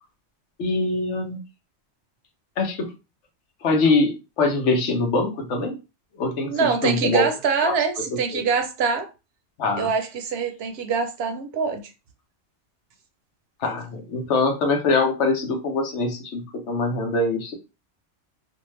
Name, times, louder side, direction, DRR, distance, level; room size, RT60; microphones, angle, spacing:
voice 1, 0.6-1.4 2.6-2.9 3.6-5.8 6.2-7.3 7.6-7.7 8.3-8.5 9.6-9.9 13.6-17.6, left 3 dB, 75° left, 1.0 m, -23 dB
voice 2, 6.5-9.1 9.7-11.8, right 5 dB, 65° right, 0.8 m, -24 dB
2.6 x 2.2 x 3.1 m
omnidirectional pair, 1.2 m